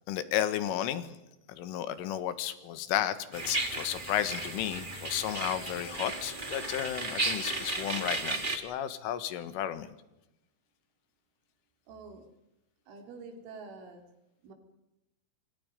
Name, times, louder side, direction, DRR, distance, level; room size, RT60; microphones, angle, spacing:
voice 1, 0.1-1.2 1.5-9.9, left 11 dB, 85° left, 12 dB, 4.0 m, -33 dB
sound 1, 3.3-8.6, right 2 dB, 60° right, 0.5 m, -34 dB
voice 2, 11.9-12.3 12.9-14.0 14.4-14.5, right 4 dB, 75° right, 5 dB, 5.5 m, -47 dB
27.5 x 26.0 x 5.3 m, 0.93 s
omnidirectional pair, 5.6 m